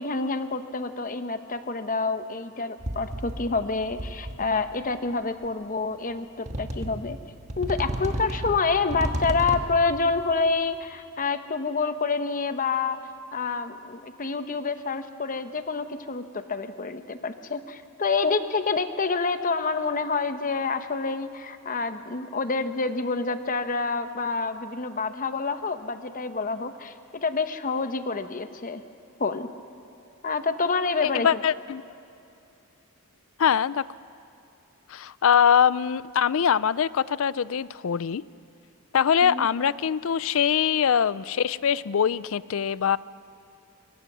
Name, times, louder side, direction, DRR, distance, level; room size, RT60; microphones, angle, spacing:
voice 1, 0.0-7.2 7.6-13.0 13.3-28.8 29.2-29.5 30.2-31.3 39.2-39.5, left 4 dB, 40° left, 9 dB, 0.9 m, -28 dB
sound 1, 2.8-3.5 3.8-4.6 5.4-5.5 6.5-7.2 7.5-9.9, right 1 dB, 30° right, 1.4 m, -32 dB
voice 2, 31.0-31.8 33.4-33.8 34.9-38.2 38.9-43.0, left 8 dB, 65° left, 19 dB, 0.4 m, -23 dB
25.5 x 22.5 x 6.1 m, 2.7 s
head